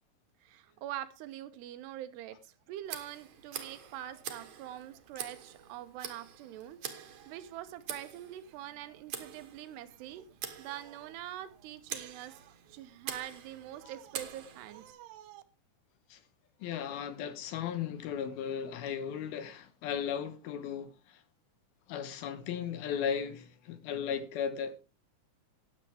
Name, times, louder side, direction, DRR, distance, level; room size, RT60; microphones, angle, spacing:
voice 1, 0.4-10.3 10.6-15.4, right 12 dB, 85° right, 3.0 m, -44 dB
Tick, 2.8-14.9, right 9 dB, 60° right, 2.3 m, -46 dB
voice 2, 16.6-21.2 21.9-24.8, left 8 dB, 75° left, 2.8 m, -36 dB
19.5 x 7.4 x 3.4 m
omnidirectional pair, 4.7 m